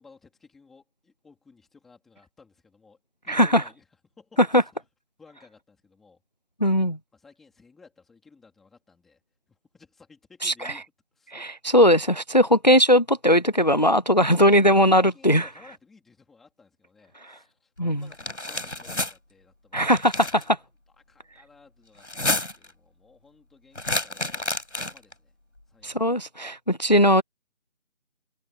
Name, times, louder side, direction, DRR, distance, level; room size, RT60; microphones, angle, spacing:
voice 1, 0.0-3.0 3.3-4.7 5.2-6.2 7.1-9.2 9.5-10.8 11.2-11.5 14.3-20.7 21.1-25.3 25.7-26.1, left 4 dB, ahead, 3.5 m, -56 dB
voice 2, 3.3-3.6 4.5-4.6 6.6-7.0 10.4-10.7 11.3-15.5 17.8-18.0 19.7-20.6 25.8-27.2, equal, 35° left, 0.8 m, -19 dB
sound 1, 18.1-19.1 19.9-20.4 22.0-22.7 23.8-25.1, left 2 dB, 70° left, 6.8 m, -29 dB
figure-of-eight pair, 175°, 37 cm